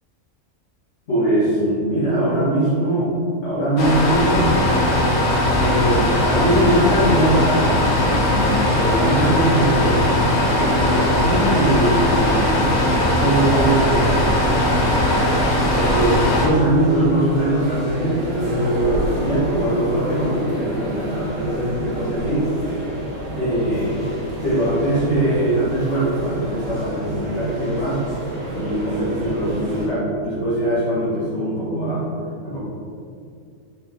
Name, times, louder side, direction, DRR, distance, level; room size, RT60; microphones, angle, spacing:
voice 1, 1.1-3.1 3.4-4.6 5.6-14.2 15.7-22.5 23.3-24.0 24.4-28.0 28.5-32.0 32.4-32.6, right 1 dB, 55° left, -11 dB, 1.4 m, -21 dB
sound 1, 3.8-16.5, left 1 dB, 85° left, 1.3 m, -19 dB
sound 2, 12.2-29.9, right 1 dB, 35° right, 0.9 m, -30 dB
4.5 x 3.5 x 3.4 m, 2.3 s
omnidirectional pair, 1.5 m